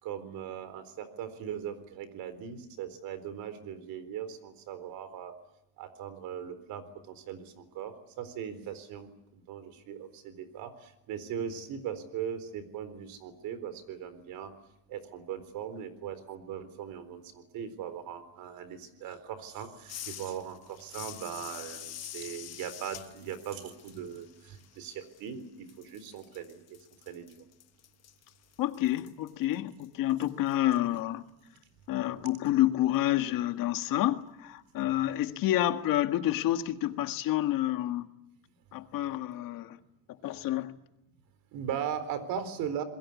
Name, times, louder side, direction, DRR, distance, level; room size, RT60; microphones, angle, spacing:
voice 1, 0.0-5.3 5.8-14.5 14.9-26.8 27.1-27.4 41.5-42.8, right 9 dB, 85° right, 4.1 m, -39 dB
sound 1, 19.9-25.4 25.7-30.5, left 11 dB, 45° left, 1.2 m, -47 dB
voice 2, 28.6-31.2 31.9-38.1 38.7-39.8 40.1-40.8, left 14 dB, 75° left, 1.8 m, -29 dB
26.5 x 22.0 x 8.4 m
cardioid pair, 165°, 34 cm